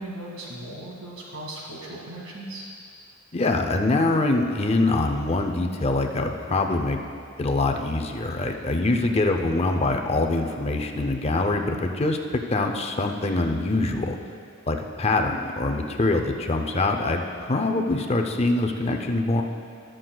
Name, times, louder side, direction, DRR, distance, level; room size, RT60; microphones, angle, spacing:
voice 1, 0.0-2.7 8.9-9.1, right 1 dB, 75° right, -3 dB, 2.2 m, -38 dB
voice 2, 3.3-7.0 7.4-14.2 14.7-19.4, left 2 dB, 30° left, 4 dB, 0.6 m, -24 dB
19.0 x 7.6 x 2.3 m, 2.3 s
head